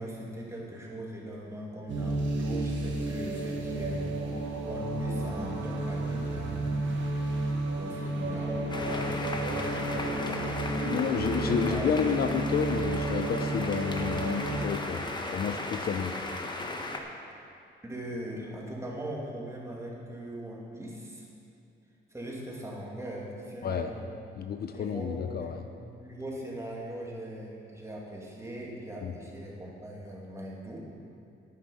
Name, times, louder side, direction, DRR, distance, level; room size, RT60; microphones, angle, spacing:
voice 1, 0.0-6.8 7.7-10.6 10.8-11.0 11.4-11.9 17.8-21.3 22.1-24.0 24.7-25.6 26.0-30.8, equal, 15° right, -3 dB, 2.3 m, -40 dB
sound 1, 1.9-14.7, right 2 dB, 70° right, 1.5 m, -32 dB
sound 2, 8.7-17.0, left 2 dB, 20° left, 1.1 m, -36 dB
voice 2, 10.8-15.0 15.3-16.2 23.6-23.9 24.4-25.6 29.0-29.1, left 7 dB, 50° left, 7 dB, 0.6 m, -30 dB
9.5 x 9.1 x 5.4 m, 2.5 s
cardioid pair, 90°, 20 cm